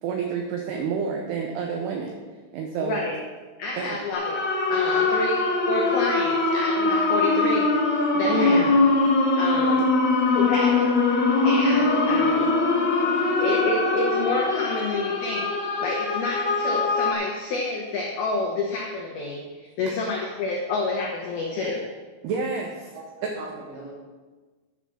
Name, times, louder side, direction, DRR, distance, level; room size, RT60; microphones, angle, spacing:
voice 1, 0.0-2.1 2.5-3.1 3.7-4.0 8.3-8.8 13.0-13.1 19.9-20.0 22.2-22.9 23.2-23.4, right 5 dB, 85° right, 2 dB, 2.3 m, -29 dB
voice 2, 2.8-3.2 3.6-4.3 4.7-8.7 9.4-9.9 10.3-11.0 11.4-12.5 13.4-19.4 19.8-21.9, left 3 dB, 80° left, -2 dB, 2.2 m, -29 dB
sound 1, 4.1-17.1, left 3 dB, 50° left, 1.2 m, -22 dB
voice 3, 12.0-12.4 12.7-12.8 13.2-13.4 22.9-23.0 23.3-23.9, right 3 dB, 65° right, -6 dB, 5.1 m, -42 dB
10.5 x 5.7 x 6.2 m, 1.3 s
omnidirectional pair, 5.8 m